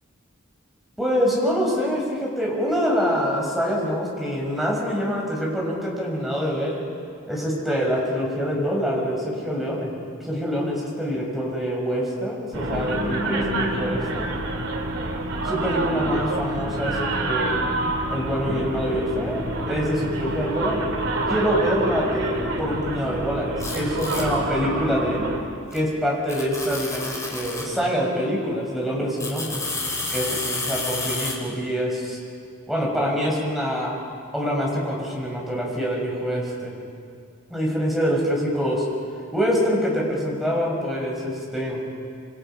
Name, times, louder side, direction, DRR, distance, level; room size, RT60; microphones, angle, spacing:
voice 1, 1.0-6.8 7.3-9.9 10.2-14.3 15.4-17.6 18.1-20.8 21.3-25.3 25.7-29.6 30.1-32.2 32.7-33.9 34.3-36.7 37.5-38.9 39.3-41.8, equal, ahead, -4 dB, 6.4 m, -25 dB
sound 1, 12.5-25.4, right 2 dB, 80° right, 3.7 m, -27 dB
sound 2, 23.6-24.3 25.7-25.8 26.3-27.7 29.2-31.4, left 3 dB, 15° left, 4.0 m, -30 dB
28.0 x 27.0 x 5.9 m, 2.3 s
head